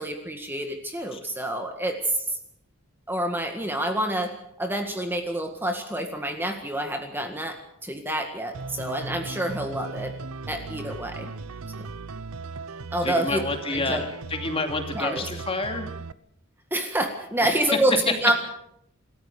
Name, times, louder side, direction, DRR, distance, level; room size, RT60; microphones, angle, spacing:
voice 1, 0.0-2.3 3.1-4.3 4.6-10.1 10.5-11.3 12.9-13.4 13.7-14.0 14.9-15.3 16.7-18.3, right 1 dB, 10° right, 4 dB, 1.8 m, -27 dB
sound 1, 8.5-16.1, right 3 dB, 85° right, 0.8 m, -37 dB
voice 2, 13.0-15.9 17.4-17.5 17.9-18.0, left 3 dB, 25° left, 5 dB, 2.5 m, -29 dB
27.0 x 14.5 x 6.8 m, 0.75 s
head